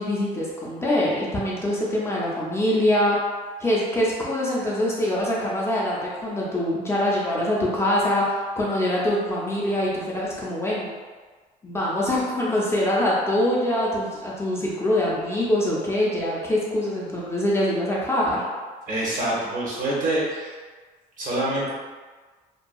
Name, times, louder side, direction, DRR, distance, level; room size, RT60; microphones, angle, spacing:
voice 1, 0.0-3.2 3.6-10.9 11.6-18.4, left 1 dB, 15° left, -6 dB, 0.5 m, -24 dB
voice 2, 18.9-20.6 21.2-21.7, right 1 dB, 50° right, -5 dB, 0.9 m, -26 dB
2.7 x 2.2 x 2.2 m, 1.4 s
cardioid pair, 110°, 17 cm